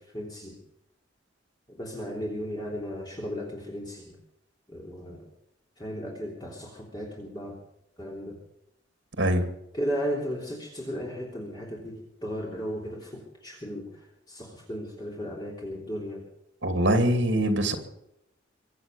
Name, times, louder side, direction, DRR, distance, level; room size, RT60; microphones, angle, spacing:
voice 1, 0.1-0.6 1.7-4.2 4.7-5.2 5.8-7.5 8.0-8.4 9.7-12.0 12.2-13.9 14.3-16.2, equal, 20° left, -2 dB, 3.3 m, -35 dB
voice 2, 9.2-9.5 16.6-17.8, right 1 dB, 70° right, 8 dB, 2.6 m, -23 dB
24.0 x 8.1 x 6.9 m, 0.80 s
head